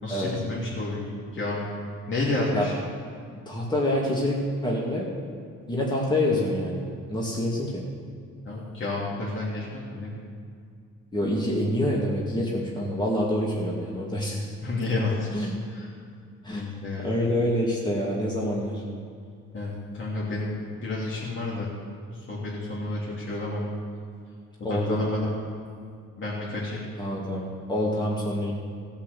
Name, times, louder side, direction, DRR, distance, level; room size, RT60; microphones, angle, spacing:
voice 1, 0.0-1.7 2.1-2.8 8.4-10.2 14.6-15.3 15.7-15.9 16.5-17.1 19.5-20.6 20.8-21.7 22.3-23.7 24.6-25.3 26.2-26.8, left 2 dB, 40° left, -6 dB, 3.1 m, -30 dB
voice 2, 3.5-5.1 5.7-7.8 11.1-14.4 15.3-15.6 16.4-16.6 17.0-18.8 24.6-25.0 27.0-27.4 27.7-28.5, left 1 dB, 15° left, -4 dB, 2.2 m, -26 dB
16.5 x 5.6 x 6.9 m, 2.2 s
cardioid pair, 85°, 31 cm